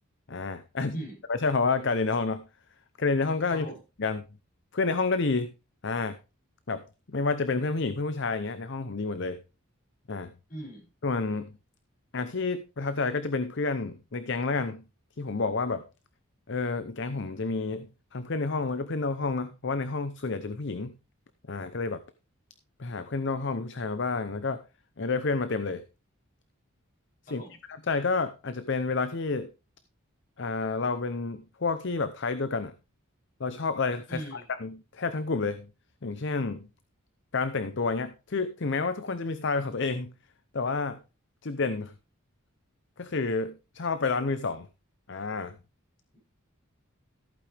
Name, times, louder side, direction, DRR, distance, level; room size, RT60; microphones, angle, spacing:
voice 1, 0.3-1.0 1.3-2.5 3.0-3.7 4.0-4.2 4.7-5.5 5.8-6.2 6.7-9.4 10.1-10.3 11.0-11.5 12.1-14.8 15.2-15.8 16.5-20.9 21.5-22.0 22.8-24.6 25.0-25.8 27.3-27.4 27.7-29.5 30.4-32.7 33.4-35.7 36.0-36.7 37.3-40.1 40.5-41.0 41.4-41.9 43.0-44.7 45.1-45.6, left 4 dB, 55° left, 12 dB, 0.7 m, -29 dB
voice 2, 10.5-10.9 27.3-27.6 34.1-34.4, right 1 dB, 40° left, -2 dB, 7.2 m, -39 dB
14.5 x 8.7 x 3.4 m, 0.30 s
head